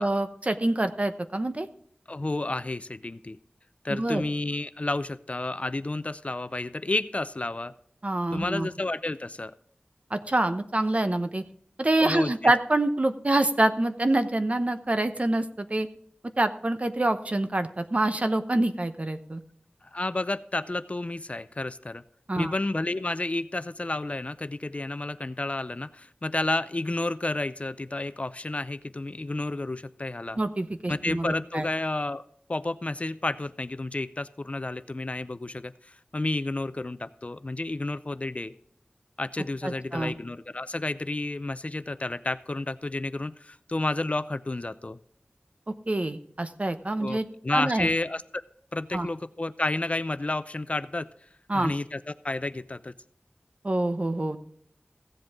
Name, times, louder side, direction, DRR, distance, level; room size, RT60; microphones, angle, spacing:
voice 1, 0.0-1.7 3.9-4.2 8.0-8.7 10.1-11.4 11.8-15.9 16.4-19.4 22.3-22.5 30.4-31.6 39.6-40.1 45.9-47.2 47.5-47.9 48.9-49.1 51.5-51.7 53.6-54.4, right 1 dB, 40° right, 9 dB, 0.9 m, -26 dB
voice 2, 2.1-3.4 3.8-7.7 8.3-9.5 12.0-12.5 19.8-22.0 22.4-30.4 30.9-32.2 32.5-38.5 39.2-45.0 47.0-48.4 48.7-51.1 51.5-52.9, left 2 dB, 40° left, 14 dB, 0.5 m, -31 dB
16.0 x 7.8 x 3.6 m, 0.63 s
wide cardioid pair, 65°, 3 cm